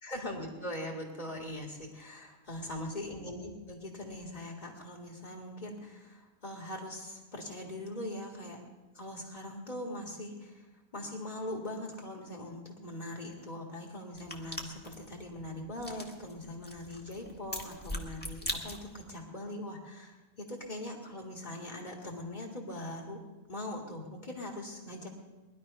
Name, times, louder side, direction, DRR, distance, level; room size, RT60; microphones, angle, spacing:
voice 1, 0.0-8.6 8.9-10.7 10.9-23.2 23.5-25.1, left 1 dB, 40° left, 0 dB, 2.2 m, -41 dB
sound 1, 14.1-19.1, left 1 dB, 10° left, 1.6 m, -42 dB
20.0 x 11.5 x 5.4 m, 1.2 s
omnidirectional pair, 1.1 m